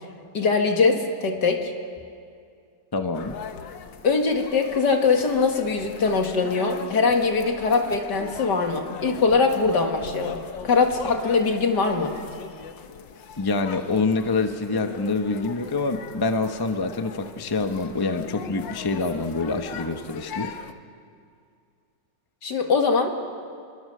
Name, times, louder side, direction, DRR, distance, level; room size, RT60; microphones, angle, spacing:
voice 1, 0.3-1.7 4.0-10.4 10.6-12.1 22.4-23.1, left 4 dB, 70° left, 3 dB, 2.5 m, -22 dB
voice 2, 2.9-3.4 13.4-20.6, left 3 dB, 15° left, 6 dB, 0.9 m, -26 dB
sound 1, 3.1-20.7, left 7 dB, 90° left, 1.7 m, -39 dB
28.5 x 23.0 x 6.8 m, 2.3 s
omnidirectional pair, 1.9 m